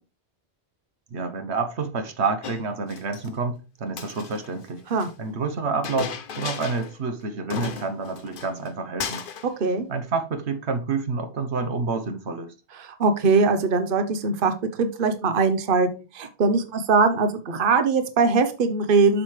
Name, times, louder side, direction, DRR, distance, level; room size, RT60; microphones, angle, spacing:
voice 1, 1.1-4.8 5.2-9.2 9.9-12.5, right 4 dB, 85° right, 1.3 m, -28 dB
Chink clink, 2.4-3.3 3.9-5.1 5.8-7.0 7.2-7.3 7.5-8.7 9.0-9.5, left 6 dB, 55° left, 0.9 m, -35 dB
voice 2, 12.8-14.5 14.8-15.9 16.1-19.2, right 4 dB, 55° right, 1.1 m, -21 dB
7.6 x 6.6 x 3.3 m
omnidirectional pair, 1.1 m